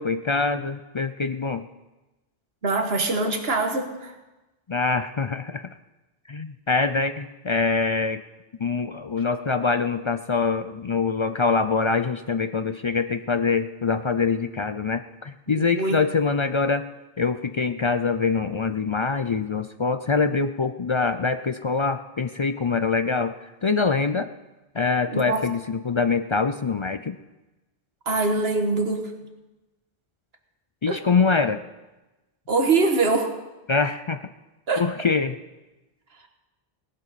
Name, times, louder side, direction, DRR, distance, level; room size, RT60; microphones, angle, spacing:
voice 1, 0.0-1.7 4.7-5.7 6.3-8.2 8.6-16.8 17.2-24.3 24.7-27.2 30.8-31.6 33.7-34.3 34.8-35.4, left 4 dB, 45° left, 10 dB, 0.4 m, -24 dB
voice 2, 2.6-4.1 15.5-16.0 25.1-25.4 28.0-29.1 30.9-31.0 32.5-33.4 34.7-34.9, right 3 dB, 75° right, 5 dB, 1.6 m, -23 dB
18.0 x 11.5 x 4.1 m, 1.1 s
omnidirectional pair, 1.0 m